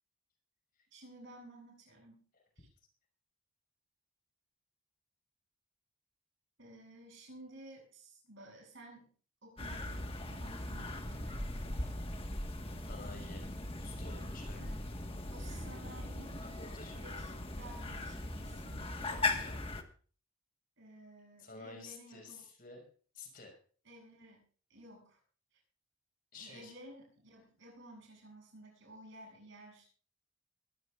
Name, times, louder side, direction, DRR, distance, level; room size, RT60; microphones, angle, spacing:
voice 1, 0.9-2.2 2.6-2.7 6.6-9.1 9.4-11.9 14.6-14.9 15.3-16.6 16.9-19.2 20.8-22.4 23.8-24.4 24.7-25.2 25.5-25.6 26.3-29.9, right 1 dB, 60° right, 0 dB, 8.0 m, -54 dB
sound 1, 9.6-19.8, left 2 dB, 25° left, 1.5 m, -39 dB
voice 2, 12.9-13.5 13.8-14.7 16.4-17.0 19.1-19.6 21.4-22.8 23.1-23.6 26.3-26.7, left 3 dB, 45° left, 2 dB, 5.6 m, -51 dB
22.0 x 16.0 x 2.5 m, 0.42 s
head